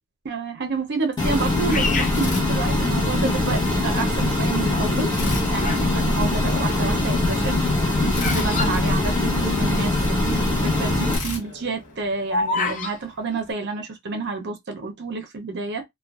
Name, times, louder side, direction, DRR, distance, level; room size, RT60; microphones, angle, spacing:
voice 1, 0.2-5.1 5.5-15.8, right 4 dB, 50° right, 0.6 m, -29 dB
sound 1, 1.2-11.2, left 2 dB, 20° left, 0.8 m, -22 dB
Bird vocalization bird call bird song, 1.7-3.2 3.8-4.3 5.0-6.0 6.2-9.7 10.0-10.1 10.3-10.6 11.0-13.0, left 3 dB, 35° left, 0.4 m, -29 dB
sound 2, 2.1-3.3 5.1-6.5 8.1-9.8 11.1-12.7, left 1 dB, 80° left, 0.9 m, -34 dB
2.4 x 2.2 x 2.3 m
head